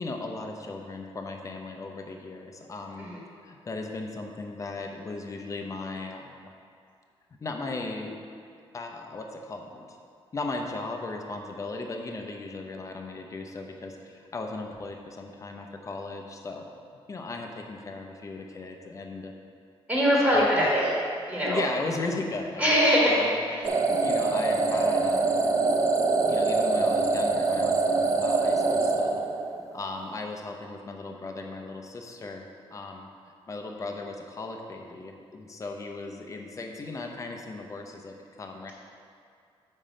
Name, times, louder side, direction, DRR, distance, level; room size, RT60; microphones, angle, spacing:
voice 1, 0.0-3.1 3.4-6.5 7.4-8.2 8.7-10.0 10.3-16.7 17.1-19.3 20.3-20.7 21.4-23.3 23.9-25.5 26.3-29.2 29.7-32.5 32.7-33.1 33.5-38.7, left 3 dB, 30° left, 3 dB, 0.7 m, -36 dB
voice 2, 19.9-20.9 21.3-21.6 22.6-23.3, equal, 15° right, -6 dB, 1.6 m, -22 dB
sound 1, 23.6-29.8, right 3 dB, 30° right, 0.5 m, -24 dB
7.4 x 5.4 x 5.1 m, 2.3 s
wide cardioid pair, 145°, 11 cm